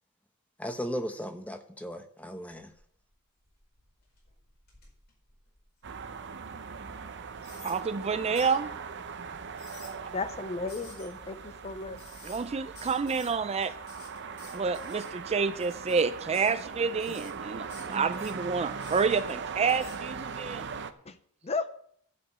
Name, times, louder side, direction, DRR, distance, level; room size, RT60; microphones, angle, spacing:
voice 1, 0.6-2.7, equal, 5° left, 7 dB, 0.9 m, -36 dB
sound 1, 3.0-3.1 3.4-6.1 6.6-6.7 7.4-7.8 8.3-8.6 9.4-9.9 10.7-11.1 12.0-12.5 12.7-13.3 13.6-15.1 15.6-16.0 16.3-16.6 17.0-17.3 17.7-18.3 18.8-19.3 19.7-20.0, left 4 dB, 45° left, 4.9 m, -51 dB
sound 2, 5.8-20.9, right 5 dB, 55° right, 0.8 m, -40 dB
voice 2, 7.6-8.7 12.2-13.7 14.5-20.7, right 5 dB, 30° right, 12 dB, 0.4 m, -29 dB
voice 3, 10.1-12.0 21.1-21.2 21.4-21.7, left 3 dB, 30° left, 11 dB, 0.6 m, -34 dB
11.5 x 5.1 x 8.6 m, 0.65 s
head